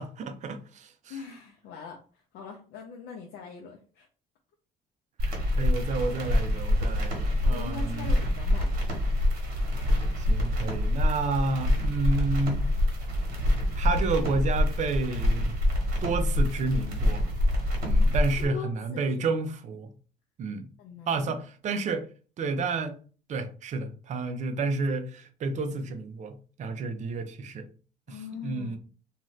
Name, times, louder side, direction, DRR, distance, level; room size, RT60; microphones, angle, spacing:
voice 1, 0.0-1.2 5.2-8.2 10.2-12.7 13.8-15.5 16.0-17.3 17.8-19.9 20.4-20.7 21.1-22.1 22.4-23.0 23.3-27.7 28.1-28.8, right 3 dB, 45° right, 8 dB, 0.5 m, -30 dB
voice 2, 1.1-4.1 7.5-8.8 18.4-19.3 20.8-21.2 28.1-28.8, left 6 dB, 80° left, 1 dB, 0.6 m, -42 dB
sound 1, 5.2-18.5, left 1 dB, 60° right, 1.2 m, -26 dB
2.6 x 2.4 x 3.1 m, 0.38 s
cardioid pair, 110°, 17 cm